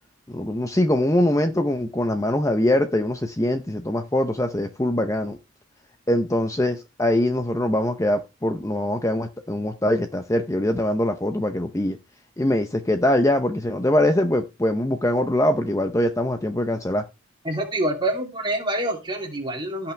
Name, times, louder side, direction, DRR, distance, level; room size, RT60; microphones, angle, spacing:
voice 1, 0.3-5.4 6.1-12.0 12.4-17.0, left 1 dB, 15° left, 0.6 m, -23 dB
voice 2, 17.4-19.9, right 1 dB, 25° right, 2.6 m, -26 dB
16.0 x 5.8 x 3.3 m
head